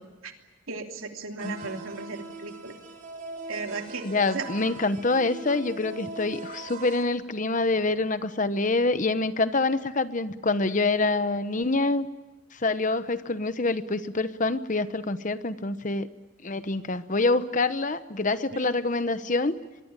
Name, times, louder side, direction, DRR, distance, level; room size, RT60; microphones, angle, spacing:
voice 1, 0.7-2.8 3.5-4.0 4.3-4.5, right 4 dB, 90° right, 3 dB, 3.1 m, -35 dB
voice 2, 1.4-1.8 4.0-12.1 12.5-16.1 16.4-19.5, left 3 dB, 40° left, 12 dB, 1.0 m, -26 dB
sound 1, 1.4-7.0, right 3 dB, 40° right, 4.0 m, -41 dB
23.5 x 23.0 x 9.0 m, 1.2 s
head